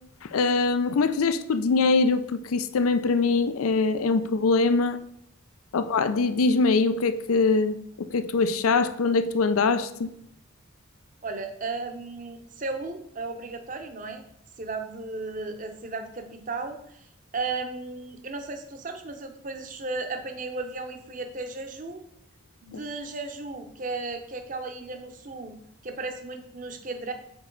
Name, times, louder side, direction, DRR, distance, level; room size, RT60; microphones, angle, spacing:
voice 1, 0.2-5.0 5.7-10.1, left 4 dB, 90° left, 0.5 m, -23 dB
voice 2, 11.2-14.2 14.6-17.1 17.3-22.0 22.6-25.5 25.8-27.1, right 3 dB, 40° right, 0.7 m, -35 dB
6.1 x 4.5 x 3.8 m
head